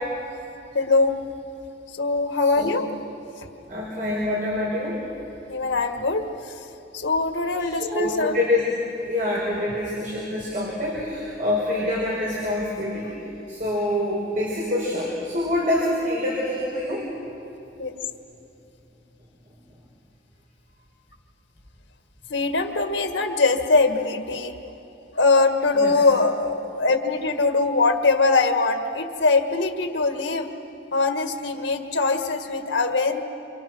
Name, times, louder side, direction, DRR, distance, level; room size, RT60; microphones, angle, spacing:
voice 1, 0.7-1.3 1.9-2.9 3.4-3.5 5.5-6.7 6.9-8.4 17.8-17.9 22.3-24.6 25.2-30.5 30.9-33.2, left 3 dB, 85° left, 6 dB, 1.8 m, -22 dB
voice 2, 3.7-5.0 7.6-8.6 9.1-17.1 25.7-26.0, left 1 dB, 50° right, -4 dB, 5.2 m, -26 dB
29.0 x 27.0 x 6.3 m, 2.9 s
head